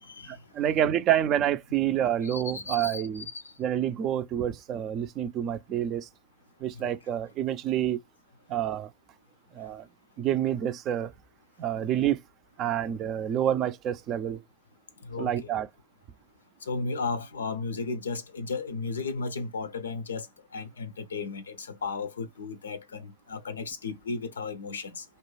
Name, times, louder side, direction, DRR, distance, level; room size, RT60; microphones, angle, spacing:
voice 1, 0.3-3.3 3.6-6.1 6.6-8.0 8.5-8.9 9.5-9.9 10.2-11.1 11.6-12.2 12.6-14.4 15.2-15.7, right 10 dB, 40° right, 0.4 m, -28 dB
voice 2, 2.2-3.4 15.1-15.3 16.7-20.3 20.5-25.0, left 4 dB, 80° left, 0.5 m, -34 dB
2.5 x 2.1 x 3.1 m
figure-of-eight pair, 95°, 0 cm